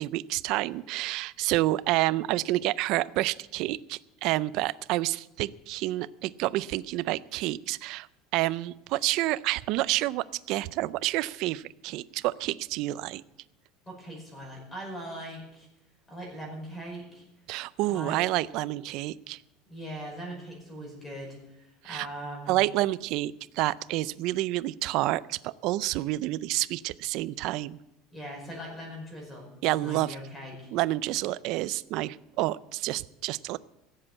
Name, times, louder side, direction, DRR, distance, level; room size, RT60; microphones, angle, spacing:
voice 1, 0.0-8.1 8.3-13.2 17.5-19.4 21.8-22.1 22.5-27.8 29.6-30.2 30.7-33.6, right 17 dB, 50° right, 17 dB, 0.4 m, -29 dB
voice 2, 13.9-15.7 16.1-17.3 17.9-18.3 19.7-22.5 28.1-29.5 29.8-30.7, equal, 15° left, 0 dB, 5.2 m, -40 dB
16.5 x 7.8 x 7.3 m, 0.88 s
cardioid pair, 160°, 0 cm